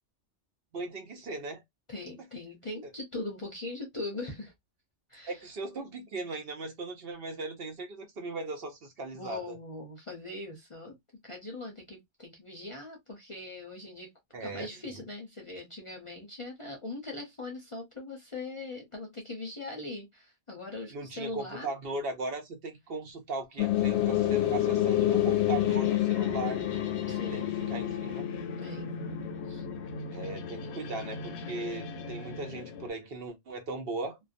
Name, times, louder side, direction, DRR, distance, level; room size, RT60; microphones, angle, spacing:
voice 1, 0.7-1.6 5.3-9.6 14.3-15.1 20.9-26.6 27.3-28.2 30.1-34.2, right 2 dB, 60° right, 0.9 m, -38 dB
voice 2, 1.9-4.5 5.1-5.4 9.1-11.0 11.2-14.1 14.4-21.7 27.1-27.5 28.6-28.9 29.5-29.6, left 2 dB, 35° left, 0.5 m, -41 dB
sound 1, 23.6-32.9, left 11 dB, 75° left, 0.8 m, -30 dB
2.4 x 2.2 x 2.4 m
omnidirectional pair, 1.2 m